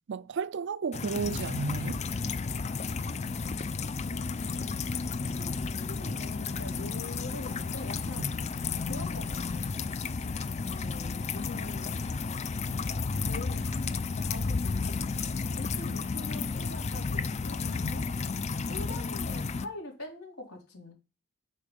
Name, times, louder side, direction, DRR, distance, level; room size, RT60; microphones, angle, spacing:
voice 1, 0.1-2.0 8.2-8.3, right 5 dB, 55° right, 0.4 m, -33 dB
sound 1, 0.9-19.7, left 4 dB, 30° left, 0.4 m, -32 dB
voice 2, 4.0-4.9 5.3-5.5 5.8-8.3 8.8-9.7 10.6-12.0 12.9-13.8 14.2-15.1 15.5-18.1 18.7-20.9, left 2 dB, 75° left, 3.7 m, -44 dB
8.5 x 6.2 x 5.2 m
head